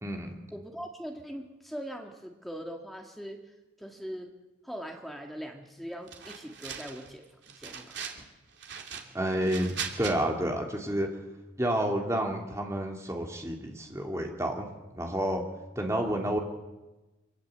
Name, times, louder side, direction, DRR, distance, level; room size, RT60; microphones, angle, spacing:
voice 1, 0.5-3.4 3.8-4.3 4.6-8.0, equal, ahead, 2 dB, 1.9 m, -41 dB
sound 1, 6.1-7.1 7.4-8.2 8.6-10.1, right 7 dB, 70° right, 2.8 m, -39 dB
voice 2, 9.1-11.1 11.6-15.4 15.7-16.4, right 1 dB, 15° right, 1 dB, 3.0 m, -30 dB
25.5 x 18.5 x 8.0 m, 1.1 s
head